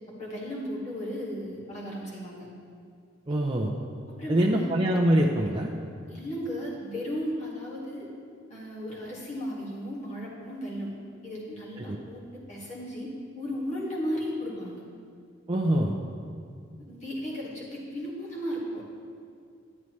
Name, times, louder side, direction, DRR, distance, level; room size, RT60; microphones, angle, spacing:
voice 1, 0.2-2.5 4.1-4.7 6.1-8.1 8.5-10.9 11.2-13.1 13.3-14.8 16.8-18.8, equal, 35° left, -6 dB, 1.9 m, -35 dB
voice 2, 3.3-3.7 4.3-5.7 11.9-12.0 15.5-16.0, right 1 dB, 25° right, -2 dB, 0.5 m, -24 dB
11.0 x 8.3 x 3.2 m, 2.3 s
head